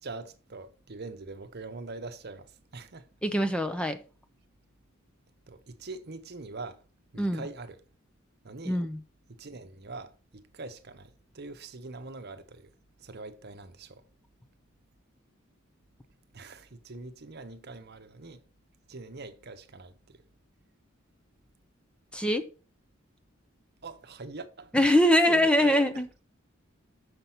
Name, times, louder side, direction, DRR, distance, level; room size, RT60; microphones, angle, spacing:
voice 1, 0.0-3.1 5.5-6.8 7.1-7.8 8.4-8.8 9.3-12.7 13.0-14.0 16.3-18.4 18.9-20.2 23.8-26.0, right 3 dB, 55° right, 0.9 m, -43 dB
voice 2, 3.2-4.0 7.2-7.4 8.7-9.0 22.1-22.4 24.7-26.1, left 1 dB, 5° left, 0.7 m, -23 dB
6.7 x 6.1 x 5.7 m
head